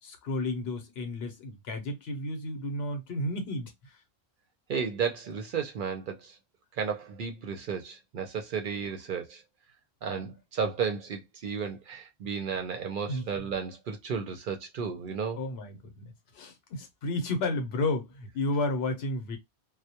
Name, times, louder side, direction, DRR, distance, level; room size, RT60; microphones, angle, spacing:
voice 1, 0.0-4.0 13.1-13.3 15.1-19.4, left 2 dB, 75° left, 0.9 m, -32 dB
voice 2, 4.7-6.4 6.7-9.4 10.0-15.4, right 6 dB, 60° right, 0.6 m, -33 dB
2.2 x 2.0 x 2.7 m
omnidirectional pair, 1.1 m